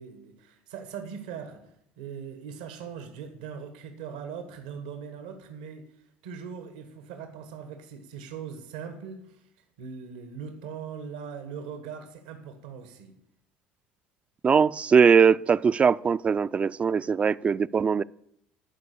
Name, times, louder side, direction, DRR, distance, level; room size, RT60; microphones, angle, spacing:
voice 1, 0.0-6.0 6.2-9.5 9.8-13.1, right 7 dB, 90° right, 1.2 m, -40 dB
voice 2, 14.4-18.0, right 6 dB, 30° right, 0.3 m, -21 dB
12.0 x 4.7 x 8.4 m
supercardioid pair, 80°, 4 cm